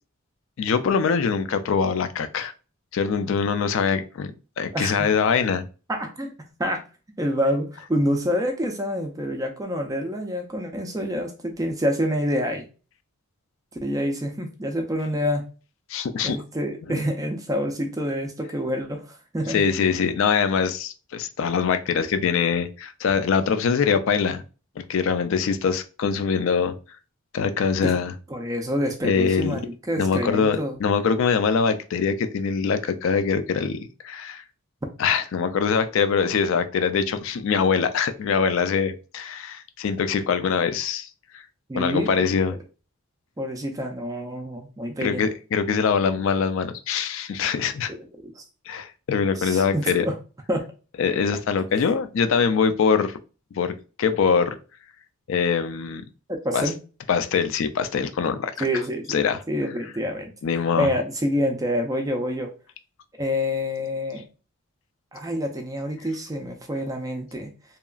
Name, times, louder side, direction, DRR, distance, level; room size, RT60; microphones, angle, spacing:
voice 1, 0.6-2.5 2.9-4.3 4.6-5.6 15.9-16.4 16.9-17.0 19.5-24.4 24.9-26.7 27.3-28.1 29.0-29.6 30.0-34.4 35.0-41.1 41.3-41.4 41.7-42.6 45.0-47.9 48.7-50.1 51.0-53.2 53.5-54.6 55.3-56.0 56.5-56.7 57.1-58.5 59.1-59.4 60.4-60.9, left 6 dB, 60° left, 10 dB, 0.3 m, -23 dB
voice 2, 4.7-5.1 5.9-6.3 6.6-6.8 7.2-12.6 13.8-15.5 16.2-19.6 27.8-27.9 28.3-30.8 41.7-42.4 43.4-45.2 47.9-48.0 48.4-48.5 49.4-50.1 50.5-50.7 56.4-56.7 58.6-59.2 59.5-60.3 60.8-62.5 63.2-64.2 65.1-67.5, equal, 15° right, 3 dB, 0.4 m, -27 dB
2.8 x 2.3 x 2.3 m, 0.34 s
head